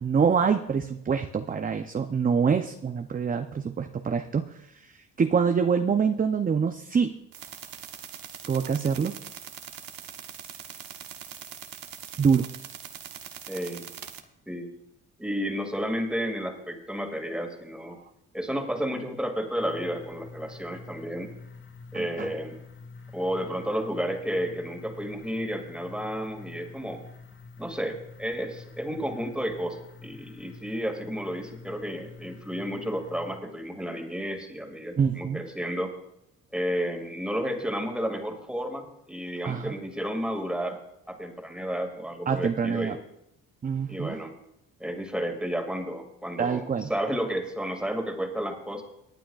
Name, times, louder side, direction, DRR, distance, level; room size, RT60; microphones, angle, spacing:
voice 1, 0.0-4.5 4.8-7.1 8.5-9.2 12.2-12.5 21.9-22.3 35.0-35.4 39.4-39.7 42.3-43.0 43.6-44.2 46.4-46.9, right 6 dB, 25° right, 7 dB, 0.6 m, -25 dB
sound 1, 7.3-14.2, right 9 dB, 70° right, 1.1 m, -42 dB
voice 2, 13.5-13.8 14.5-14.7 15.2-18.0 18.3-21.3 21.9-22.6 23.1-27.0 27.6-35.9 36.5-40.8 41.1-43.0 43.9-44.3 44.8-48.8, equal, 5° right, 3 dB, 2.2 m, -32 dB
sound 2, 19.6-33.4, left 4 dB, 35° left, 1.7 m, -47 dB
24.5 x 9.1 x 2.4 m, 0.82 s
cardioid pair, 80°, 35 cm